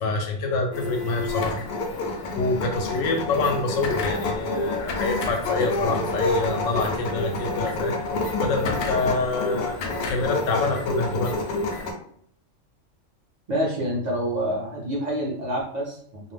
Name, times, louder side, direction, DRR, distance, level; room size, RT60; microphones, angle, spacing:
voice 1, 0.0-1.6 2.4-8.0 8.4-9.8 10.1-11.4, left 3 dB, 85° left, 4 dB, 1.0 m, -26 dB
sound 1, 0.7-11.9, left 2 dB, 65° left, 0.7 m, -28 dB
voice 2, 13.5-16.3, equal, 45° right, -3 dB, 0.6 m, -27 dB
2.4 x 2.0 x 3.2 m, 0.66 s
omnidirectional pair, 1.3 m